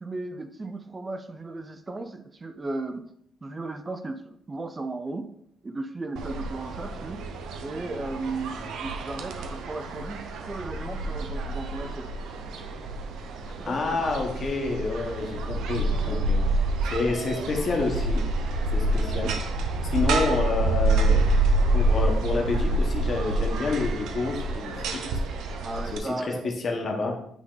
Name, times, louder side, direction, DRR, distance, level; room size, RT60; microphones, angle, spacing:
voice 1, 0.0-3.1 3.4-5.3 5.6-7.2 7.6-12.1 13.6-14.1 25.6-26.5, right 2 dB, 15° right, 9 dB, 0.4 m, -35 dB
sound 1, 6.2-26.0, right 2 dB, 80° right, 0.8 m, -27 dB
voice 2, 13.6-16.4 16.9-18.2 18.7-19.3 19.9-21.3 21.7-25.0 25.8-27.2, left 3 dB, 30° left, 1 dB, 1.3 m, -28 dB
8.9 x 3.8 x 3.9 m, 0.69 s
cardioid pair, 170°, 0 cm